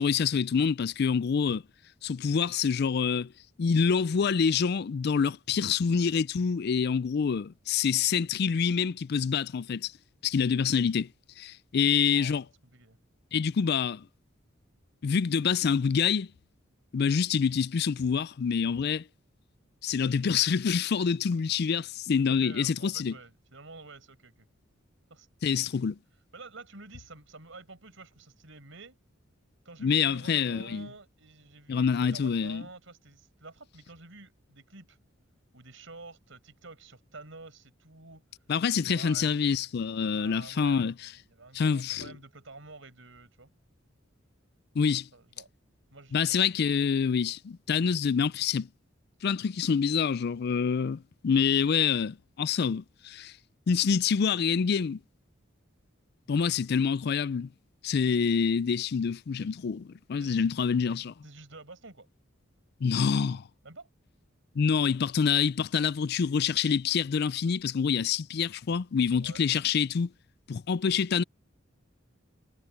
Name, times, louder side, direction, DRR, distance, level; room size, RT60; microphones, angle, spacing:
voice 1, 0.0-1.6 2.0-3.3 3.6-9.9 10.2-11.1 11.4-12.4 13.3-14.1 15.0-16.3 16.9-19.0 19.8-23.2 25.4-26.0 29.8-30.9 31.7-32.7 38.5-40.9 41.5-42.1 44.8-45.1 46.1-48.7 49.2-53.3 53.7-55.0 56.3-57.5 57.8-61.1 62.8-63.4 64.6-70.1 70.5-71.2, left 6 dB, 55° left, 0.4 m, -26 dB
voice 2, 12.0-12.4 12.7-13.0 22.3-24.5 25.1-25.8 26.3-29.0 29.6-35.0 35.5-38.3 38.8-39.7 40.0-43.5 45.1-45.5 45.9-46.5 60.2-60.5 61.2-62.1 63.6-63.9 69.2-69.4, right 3 dB, 75° right, 5.6 m, -49 dB
head